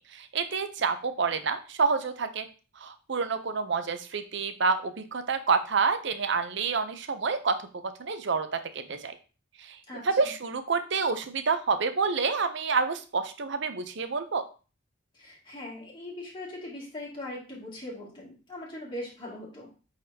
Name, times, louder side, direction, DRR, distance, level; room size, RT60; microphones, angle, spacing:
voice 1, 0.1-2.5 2.8-7.6 8.0-9.1 9.7-9.8 10.0-14.4, right 5 dB, 60° right, 10 dB, 0.7 m, -28 dB
voice 2, 9.9-10.3 15.1-19.7, left 1 dB, 25° left, -5 dB, 2.5 m, -40 dB
8.3 x 4.1 x 2.8 m, 0.35 s
head